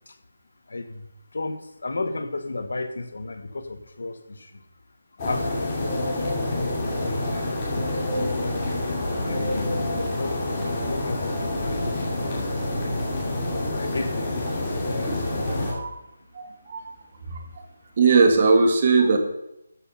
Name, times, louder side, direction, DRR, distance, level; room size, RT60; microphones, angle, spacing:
voice 1, 0.7-4.6 5.2-6.4 7.0-7.4 7.7-8.4 9.2-12.5 13.5-15.0, left 2 dB, 75° left, 9 dB, 1.4 m, -34 dB
sound 1, 5.2-15.7, left 1 dB, 20° left, 2.6 m, -27 dB
voice 2, 15.5-16.0 16.3-16.9 17.3-17.4 18.0-19.2, right 4 dB, 35° right, 5 dB, 1.6 m, -20 dB
13.5 x 6.3 x 5.6 m, 0.84 s
hypercardioid pair, 175°, 0 cm